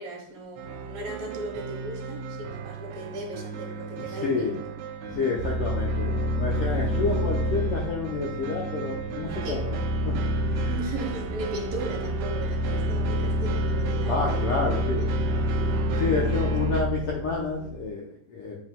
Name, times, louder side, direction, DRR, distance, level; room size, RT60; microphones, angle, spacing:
voice 1, 0.0-4.8 5.6-5.7 9.4-9.7 10.7-14.9 16.3-16.5, right 1 dB, 70° right, 1 dB, 2.4 m, -37 dB
sound 1, 0.6-16.8, right 6 dB, 85° right, 1.4 m, -36 dB
voice 2, 4.0-4.6 5.1-9.8 10.0-10.1 10.5-10.7 14.0-15.0 15.9-18.6, left 4 dB, 75° left, -2 dB, 1.4 m, -29 dB
sound 2, 5.4-17.9, equal, 40° right, 1.8 m, -28 dB
9.3 x 4.7 x 2.2 m, 0.64 s
omnidirectional pair, 3.4 m